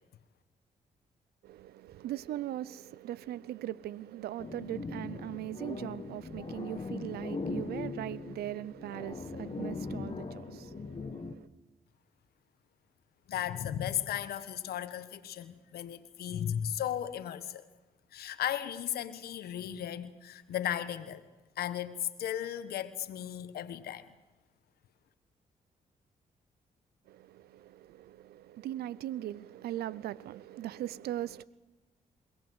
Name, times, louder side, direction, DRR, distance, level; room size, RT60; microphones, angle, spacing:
voice 1, 1.4-11.5 27.1-31.4, right 13 dB, 85° right, 0.7 m, -40 dB
sound 1, 4.4-11.3, left 4 dB, 35° left, 1.8 m, -40 dB
voice 2, 13.3-17.7 18.1-21.2 21.6-24.1, left 10 dB, 80° left, 1.4 m, -35 dB
22.0 x 18.0 x 8.0 m
supercardioid pair, 60°, 16 cm